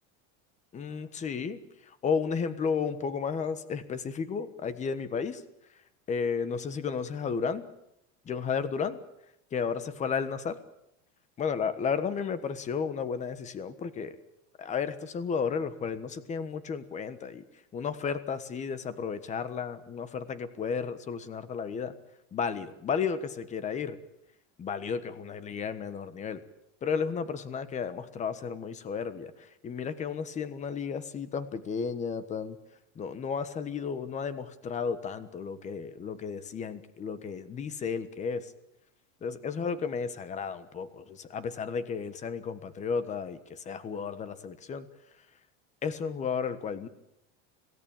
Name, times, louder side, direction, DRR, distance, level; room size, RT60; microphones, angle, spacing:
voice 1, 0.7-5.4 6.1-7.7 8.3-9.0 9.5-10.6 11.4-14.2 14.6-17.4 17.7-21.9 22.3-24.0 24.6-26.4 26.8-32.6 32.9-38.5 39.2-44.9 45.8-46.9, left 6 dB, 20° left, 13 dB, 1.3 m, -33 dB
26.5 x 17.0 x 8.8 m, 0.82 s
cardioid pair, 170°, 34 cm